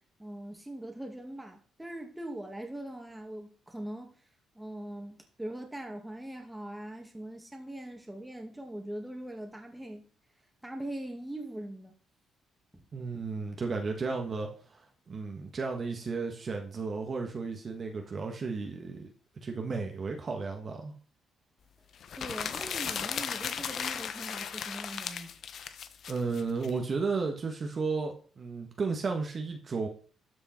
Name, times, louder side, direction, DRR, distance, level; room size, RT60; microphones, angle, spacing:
voice 1, 0.2-4.1 4.5-10.0 10.6-11.9 22.2-25.3, right 1 dB, 10° right, 3 dB, 2.3 m, -41 dB
voice 2, 12.9-14.8 15.1-19.1 19.4-20.9 26.1-29.9, right 4 dB, 40° right, 3 dB, 1.7 m, -33 dB
sound 1, 22.0-26.7, left 7 dB, 60° left, 0.9 m, -36 dB
13.0 x 5.5 x 4.5 m, 0.42 s
cardioid pair, 90°, 0 cm